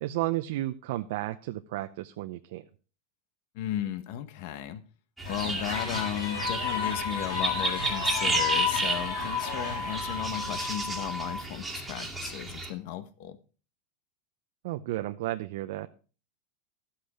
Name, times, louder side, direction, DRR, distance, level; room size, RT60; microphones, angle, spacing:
voice 1, 0.0-2.6 14.6-15.9, right 16 dB, 65° right, 0.7 m, -32 dB
voice 2, 3.5-4.8 5.3-13.4, left 11 dB, 60° left, 1.2 m, -35 dB
sound 1, 5.2-10.8, left 8 dB, 90° left, 3.6 m, -33 dB
sound 2, 5.2-12.7, right 3 dB, 5° right, 2.3 m, -33 dB
sound 3, 6.4-11.4, left 1 dB, 20° left, 1.8 m, -37 dB
13.0 x 8.0 x 5.0 m
supercardioid pair, 140°, 0 cm